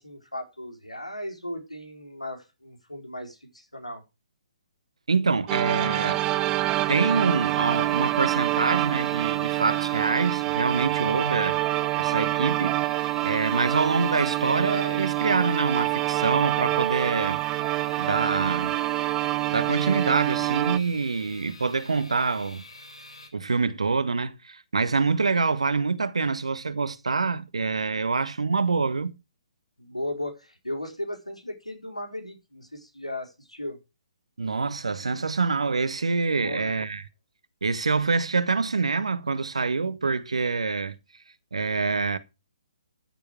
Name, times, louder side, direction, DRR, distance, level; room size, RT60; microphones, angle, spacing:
voice 1, 0.0-4.0 29.8-33.8 36.4-36.8, left 1 dB, 85° left, 4.3 m, -36 dB
voice 2, 5.1-6.2 6.9-11.6 12.0-17.4 18.0-18.8 19.5-22.6 23.3-29.1 34.4-37.0 37.6-40.9 41.5-42.2, right 4 dB, 65° right, 1.2 m, -26 dB
sound 1, 5.5-23.3, left 2 dB, 70° left, 3.7 m, -46 dB
sound 2, 5.5-20.8, right 18 dB, 20° right, 0.5 m, -26 dB
13.5 x 7.0 x 4.8 m
figure-of-eight pair, 130°, 3 cm